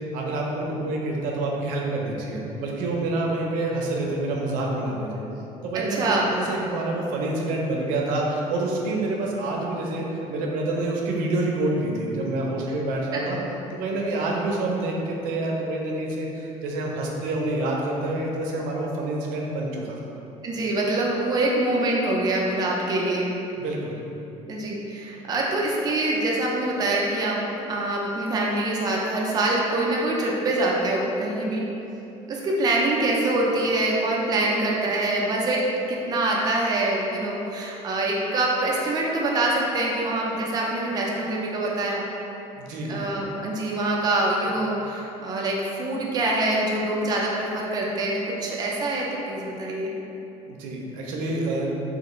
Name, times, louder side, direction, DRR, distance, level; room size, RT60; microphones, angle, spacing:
voice 1, 0.1-5.2 5.6-13.4 13.7-20.0 23.6-24.0 42.6-42.9 50.5-51.7, right 2 dB, 85° right, -1 dB, 0.5 m, -27 dB
voice 2, 5.7-6.2 13.1-13.2 20.4-23.3 24.5-27.4 27.7-31.7 32.3-42.0 42.9-49.9, right 2 dB, 30° right, -3 dB, 0.4 m, -25 dB
3.4 x 2.4 x 2.9 m, 3.0 s
cardioid pair, 165°, 14 cm